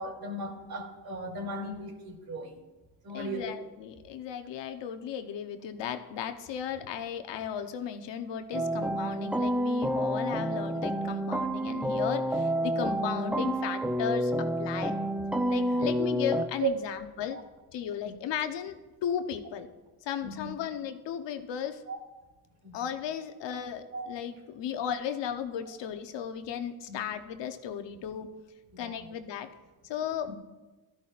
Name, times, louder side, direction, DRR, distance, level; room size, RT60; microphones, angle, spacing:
voice 1, 0.0-2.6 3.0-3.5 15.6-15.9 16.6-16.7 17.3-17.4 18.0-18.1 20.2-20.5 21.9-22.0 22.6-22.8 23.9-24.1 26.9-27.0 27.9-28.0 28.7-29.1 30.2-30.3, right 3 dB, 55° right, -2 dB, 3.0 m, -37 dB
voice 2, 3.1-14.9 15.5-17.4 17.7-19.7 20.0-21.8 22.7-28.3 28.8-29.5 29.8-30.3, left 8 dB, 70° left, 8 dB, 1.1 m, -35 dB
sound 1, 8.5-16.5, equal, 5° right, 0.7 m, -29 dB
15.5 x 13.0 x 2.5 m, 1.2 s
cardioid pair, 80°, 44 cm